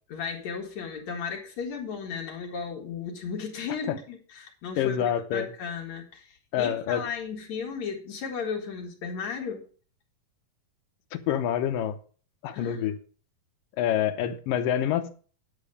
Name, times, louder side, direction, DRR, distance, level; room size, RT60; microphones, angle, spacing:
voice 1, 0.1-9.7 12.5-12.8, left 6 dB, 60° left, 2.8 m, -35 dB
voice 2, 4.8-5.5 6.5-7.0 11.3-12.0 12.4-13.0 13.8-15.1, left 10 dB, 85° left, 2.6 m, -26 dB
9.8 x 7.2 x 6.6 m
omnidirectional pair, 3.9 m